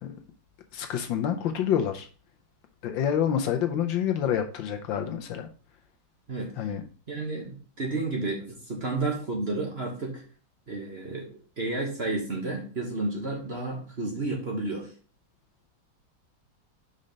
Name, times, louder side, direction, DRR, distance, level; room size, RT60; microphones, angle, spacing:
voice 1, 0.7-2.1 2.8-5.5 6.6-6.8, left 9 dB, 70° left, 5 dB, 1.3 m, -27 dB
voice 2, 6.3-6.7 7.1-10.2 10.7-14.9, right 2 dB, 35° right, -1 dB, 1.3 m, -31 dB
5.3 x 4.2 x 5.1 m, 0.38 s
omnidirectional pair, 2.3 m